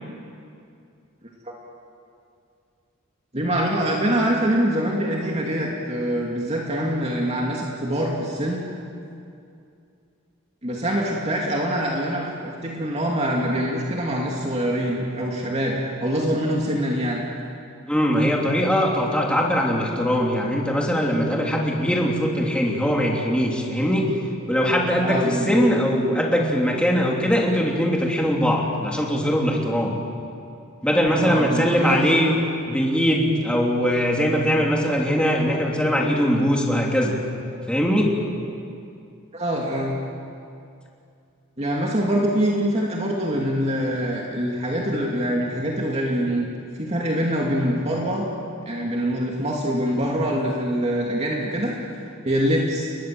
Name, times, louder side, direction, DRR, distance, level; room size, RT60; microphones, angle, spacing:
voice 1, 3.3-8.6 10.6-17.2 25.0-25.7 31.1-32.0 39.3-40.0 41.6-46.5 46.8-48.3 48.7-51.7 52.2-52.9, equal, 30° right, -2 dB, 2.6 m, -24 dB
voice 2, 17.9-24.1 24.5-30.0 30.8-37.1 37.7-38.1, equal, 5° left, -2 dB, 3.1 m, -21 dB
30.0 x 21.5 x 7.8 m, 2.5 s
head